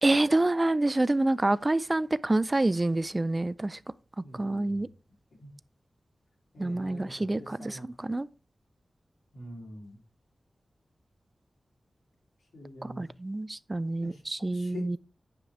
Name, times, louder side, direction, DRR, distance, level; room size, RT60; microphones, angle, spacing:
voice 1, 0.0-3.8 4.4-4.9 6.6-7.8 8.0-8.3 13.0-15.0, right 2 dB, 25° right, 0.4 m, -27 dB
voice 2, 4.2-4.9 5.4-5.5 6.5-7.9 9.3-10.0 12.5-13.0 14.0-14.2 14.5-15.0, left 1 dB, 85° left, 3.2 m, -44 dB
9.7 x 5.7 x 3.4 m
wide cardioid pair, 80°, 0 cm